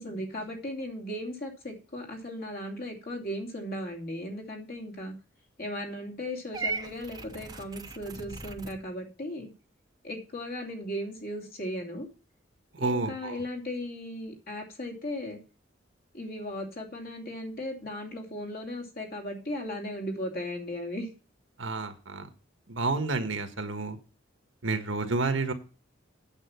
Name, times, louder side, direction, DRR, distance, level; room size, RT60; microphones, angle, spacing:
voice 1, 0.0-5.1 5.6-9.5 10.0-12.1 12.8-15.4 16.1-21.1, left 1 dB, 50° left, 2 dB, 2.8 m, -36 dB
Purr / Meow, 6.5-8.8, right 4 dB, 20° right, 0.9 m, -37 dB
voice 2, 12.7-13.4 21.6-22.3 22.7-24.0 24.6-25.5, right 3 dB, 80° right, 8 dB, 1.6 m, -30 dB
9.0 x 7.4 x 5.8 m, 0.35 s
head